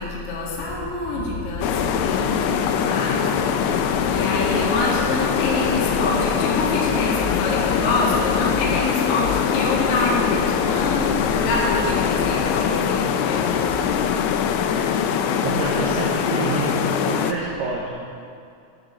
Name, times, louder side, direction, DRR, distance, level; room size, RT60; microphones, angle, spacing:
voice 1, 0.0-13.7, left 2 dB, 45° left, -6 dB, 2.1 m, -26 dB
sound 1, 0.6-13.8, left 1 dB, 60° right, 3.9 m, -36 dB
sound 2, 1.6-17.3, left 8 dB, 85° left, 2.7 m, -22 dB
voice 2, 15.4-16.8 17.1-17.9, right 4 dB, 85° right, -3 dB, 2.3 m, -27 dB
12.0 x 11.5 x 3.9 m, 2.5 s
omnidirectional pair, 5.9 m